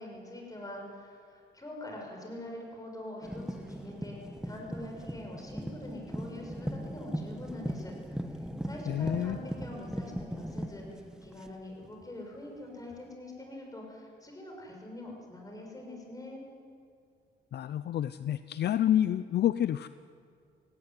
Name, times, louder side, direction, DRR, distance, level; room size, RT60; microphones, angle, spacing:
voice 1, 0.0-7.9 8.3-16.4, left 1 dB, 20° left, 0 dB, 6.7 m, -44 dB
sound 1, 3.2-12.0 12.9-13.0, equal, 5° right, 1.0 m, -39 dB
voice 2, 8.9-9.4 17.5-19.9, left 11 dB, 55° left, 14 dB, 0.5 m, -28 dB
17.5 x 17.0 x 9.5 m, 2.2 s
cardioid pair, 90°, 20 cm